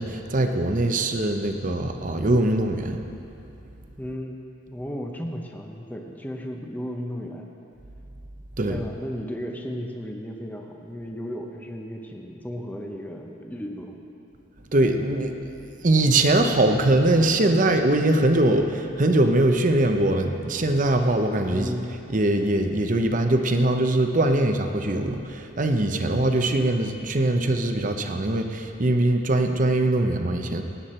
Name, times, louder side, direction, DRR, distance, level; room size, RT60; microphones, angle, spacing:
voice 1, 0.0-3.0 8.6-8.8 14.7-15.5 15.8-21.7 22.1-30.6, right 1 dB, 40° right, 6 dB, 0.8 m, -22 dB
voice 2, 4.0-4.4 4.7-7.5 8.7-14.0 21.5-21.9, equal, 10° left, 1 dB, 0.8 m, -34 dB
18.5 x 9.4 x 4.4 m, 2.9 s
head